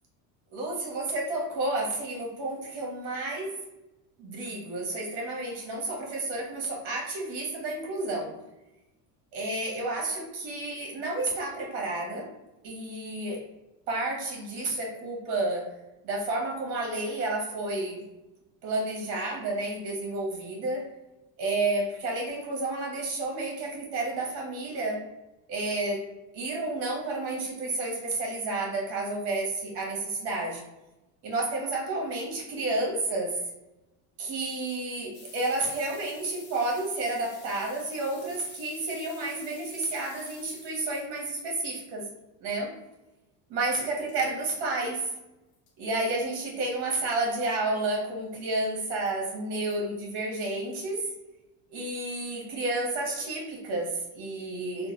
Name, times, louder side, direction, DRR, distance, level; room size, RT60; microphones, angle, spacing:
voice 1, 0.5-3.5 4.2-8.3 9.3-12.3 12.6-13.4 13.9-15.6 16.0-18.0 18.6-20.8 21.4-25.0 25.5-26.0 26.3-30.6 31.2-33.4 34.2-42.0 42.4-42.7 43.5-45.1 45.8-51.0 51.7-54.9, right 2 dB, 50° right, -1 dB, 1.3 m, -31 dB
sound 1, 35.1-41.0 43.8-43.9 44.1-44.2 44.7-44.8 45.0-45.1 45.5-45.7 47.1-47.4 47.9-48.0 48.6-49.1 49.7-49.8, left 4 dB, 45° left, 0.7 m, -51 dB
3.2 x 2.3 x 3.2 m, 0.97 s
cardioid pair, 175°, 49 cm